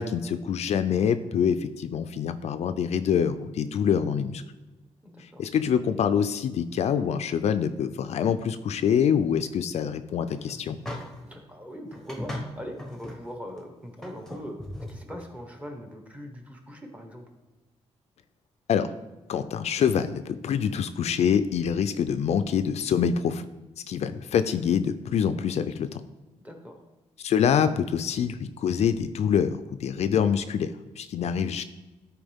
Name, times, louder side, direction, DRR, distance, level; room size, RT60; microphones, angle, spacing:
voice 1, 0.0-4.4 5.4-10.8 18.7-18.9 19.3-23.5 23.9-26.0 27.2-31.6, left 7 dB, 65° left, 10 dB, 0.4 m, -25 dB
voice 2, 5.0-5.4 11.3-14.6 14.9-17.2 26.4-26.8, equal, 10° right, 3 dB, 1.3 m, -41 dB
sound 1, 10.3-11.4 11.9-13.2 13.6-13.7 14.0-15.2, left 1 dB, 5° left, 1.1 m, -38 dB
12.5 x 4.6 x 3.5 m, 1.1 s
wide cardioid pair, 130°, 12 cm